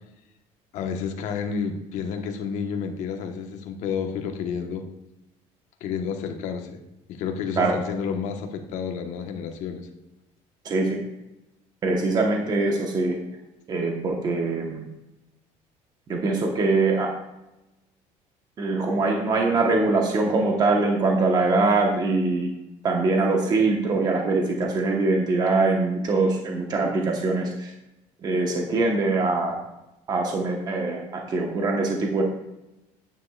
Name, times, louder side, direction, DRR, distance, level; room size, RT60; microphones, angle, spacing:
voice 1, 0.7-4.8 5.8-6.8 7.1-9.9, left 6 dB, 60° left, 5 dB, 1.2 m, -30 dB
voice 2, 10.6-11.0 11.8-13.2 13.7-14.8 16.1-17.1 18.6-22.5 22.8-27.7 28.2-29.6 30.1-32.2, right 3 dB, 30° right, 1 dB, 1.1 m, -23 dB
9.8 x 9.2 x 2.4 m, 0.95 s
cardioid pair, 160°, 14 cm